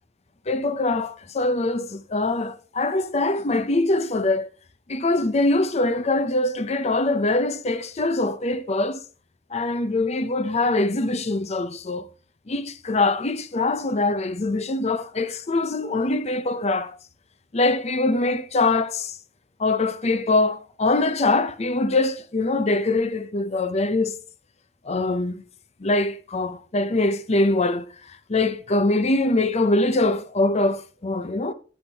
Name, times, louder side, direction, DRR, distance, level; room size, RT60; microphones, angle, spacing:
voice 1, 0.5-4.5 4.9-9.0 9.5-12.1 12.5-17.0 17.5-19.2 19.6-24.2 24.8-25.4 25.8-31.5, left 2 dB, 35° left, 0.6 m, -23 dB
9.9 x 7.1 x 2.9 m
head